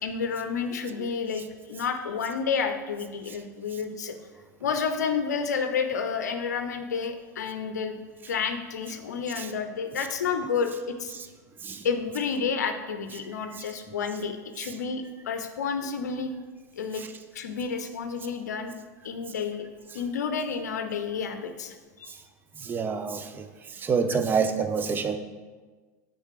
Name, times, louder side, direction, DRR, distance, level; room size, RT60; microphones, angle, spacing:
voice 1, 0.0-4.2 4.6-8.0 8.3-11.1 11.8-16.3 16.8-17.0 17.3-18.7 19.0-19.7 19.9-22.1, left 6 dB, 70° left, 7 dB, 0.6 m, -30 dB
voice 2, 22.6-25.2, right 5 dB, 20° right, 8 dB, 0.5 m, -28 dB
6.4 x 4.1 x 4.8 m, 1.4 s
figure-of-eight pair, 85°, 9 cm